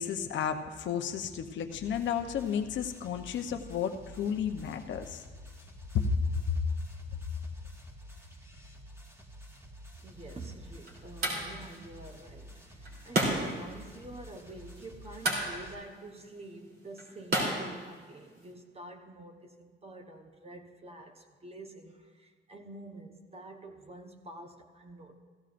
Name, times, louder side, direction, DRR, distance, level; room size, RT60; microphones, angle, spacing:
voice 1, 0.0-5.2 5.9-6.0 6.3-6.5, left 8 dB, 70° left, 5 dB, 0.9 m, -32 dB
sound 1, 1.7-15.7, equal, 10° right, 1.6 m, -50 dB
voice 2, 10.0-25.2, right 2 dB, 30° right, 4 dB, 1.1 m, -47 dB
sound 2, 10.0-18.5, right 1 dB, 50° right, 3.3 m, -36 dB
16.5 x 14.0 x 2.6 m, 1.5 s
cardioid pair, 90°, 20 cm